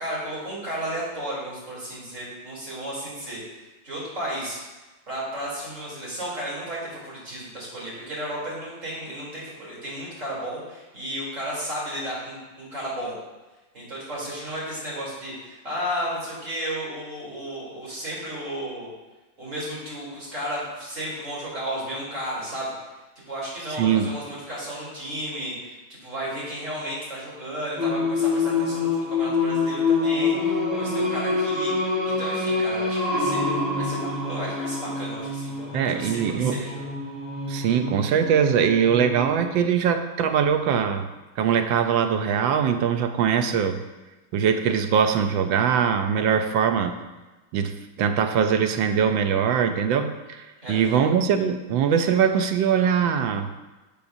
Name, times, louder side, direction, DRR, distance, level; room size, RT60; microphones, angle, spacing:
voice 1, 0.0-3.4 3.8-4.6 5.1-13.2 13.7-18.9 19.4-22.7 23.3-36.9 50.6-51.0, equal, 40° right, -7 dB, 3.6 m, -33 dB
voice 2, 23.8-24.1 35.7-36.6 37.5-41.1 41.4-43.8 44.3-46.9 47.5-53.5, right 7 dB, 85° right, 8 dB, 1.4 m, -22 dB
Singing, 27.8-39.5, left 3 dB, ahead, 2.1 m, -26 dB
12.0 x 6.7 x 2.6 m, 1.1 s
omnidirectional pair, 2.0 m